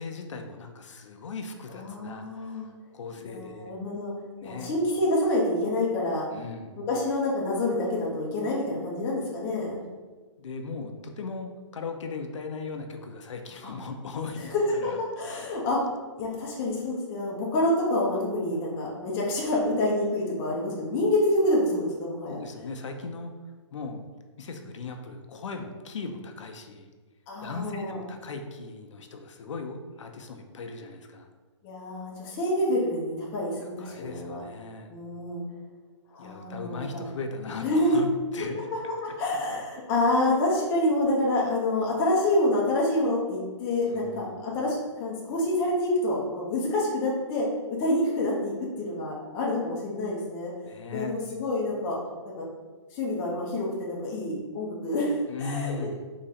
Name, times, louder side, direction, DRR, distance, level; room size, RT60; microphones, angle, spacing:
voice 1, 0.0-2.6 2.9-3.7 4.4-4.8 6.3-6.8 10.4-15.0 15.3-15.6 22.3-23.3 23.7-24.0 24.4-26.9 27.4-31.3 33.6-34.9 36.2-38.1 38.3-38.7 43.9-44.4 50.6-51.3 55.3-56.0, left 4 dB, 70° left, 5 dB, 0.6 m, -38 dB
voice 2, 1.7-2.7 3.2-4.1 4.4-6.2 6.9-9.8 13.6-13.7 14.4-15.8 16.1-22.4 27.3-28.0 31.6-34.4 34.9-35.4 36.1-37.1 37.6-38.0 39.0-50.5 50.9-52.0 52.2-52.4 52.9-56.0, left 1 dB, 15° left, -4 dB, 0.5 m, -27 dB
3.8 x 3.0 x 4.1 m, 1.4 s
hypercardioid pair, 170°, 16 cm